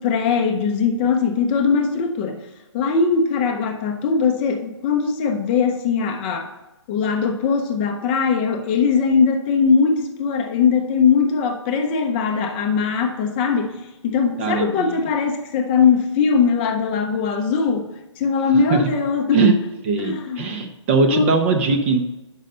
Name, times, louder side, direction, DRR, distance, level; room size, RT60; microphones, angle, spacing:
voice 1, 0.0-2.4 2.7-6.5 6.9-17.9 18.2-19.5 20.0-20.5 21.1-21.3, left 5 dB, 20° left, 4 dB, 0.5 m, -20 dB
voice 2, 14.4-15.0 18.7-18.8 19.3-19.5 19.9-22.0, right 4 dB, 25° right, 5 dB, 0.5 m, -20 dB
6.3 x 5.4 x 5.4 m, 1.0 s
hypercardioid pair, 150°, 16 cm